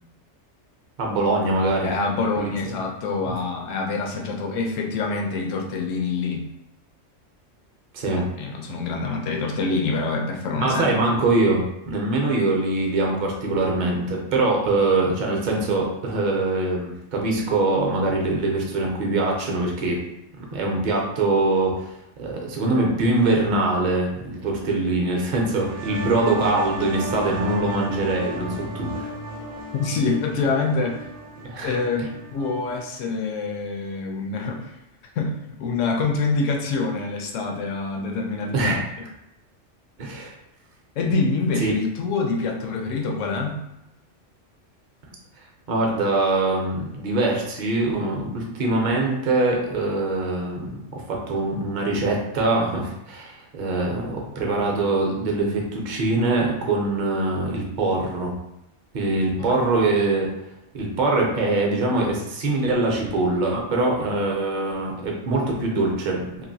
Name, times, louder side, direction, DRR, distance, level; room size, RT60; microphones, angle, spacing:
voice 1, 1.0-1.9 2.4-2.5 3.2-3.3 7.9-8.3 10.5-20.0 20.4-29.1 31.4-32.1 38.5-38.8 40.0-40.3 41.6-41.7 45.7-58.3 58.9-60.3 60.7-66.4, right 2 dB, 45° right, -1 dB, 0.7 m, -23 dB
voice 2, 1.8-6.5 8.4-11.1 29.7-31.0 31.6-34.8 35.1-38.7 41.0-43.6 59.4-59.7, left 4 dB, 85° left, 1 dB, 1.0 m, -26 dB
sound 1, 25.4-32.8, right 1 dB, 70° right, 0.9 m, -34 dB
2.9 x 2.5 x 2.6 m, 0.86 s
omnidirectional pair, 1.3 m